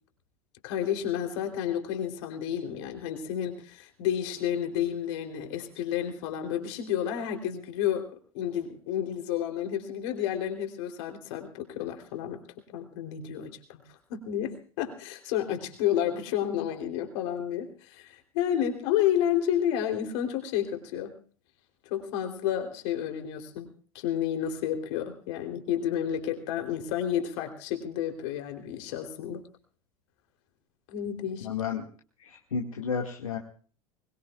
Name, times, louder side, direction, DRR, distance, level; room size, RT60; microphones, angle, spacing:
voice 1, 0.6-8.1 8.3-12.4 12.7-13.8 14.1-21.1 21.8-23.7 24.0-29.4 30.9-31.5, left 10 dB, 55° left, 5 dB, 3.5 m, -30 dB
voice 2, 31.4-31.8 32.2-33.4, left 6 dB, 75° left, 0 dB, 2.1 m, -32 dB
23.5 x 21.0 x 2.4 m, 0.43 s
figure-of-eight pair, 80°, 18 cm